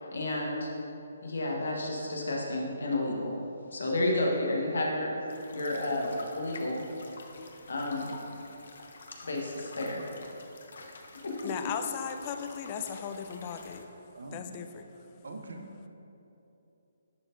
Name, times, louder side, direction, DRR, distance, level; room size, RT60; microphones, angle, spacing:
voice 1, 0.0-0.7 1.2-3.3 3.7-5.1 5.5-6.8 7.7-8.2 9.2-10.0 10.7-10.9 11.2-11.3 11.6-11.7, left 1 dB, 85° left, -1 dB, 1.2 m, -31 dB
sound 1, 5.3-13.8, left 3 dB, 65° left, 0.7 m, -49 dB
voice 2, 11.4-13.9 14.3-14.8, left 7 dB, 25° left, 7 dB, 0.3 m, -37 dB
voice 3, 15.2-15.9, right 2 dB, 80° right, 3 dB, 0.8 m, -43 dB
10.5 x 4.3 x 2.6 m, 2.9 s
hypercardioid pair, 160°, 0 cm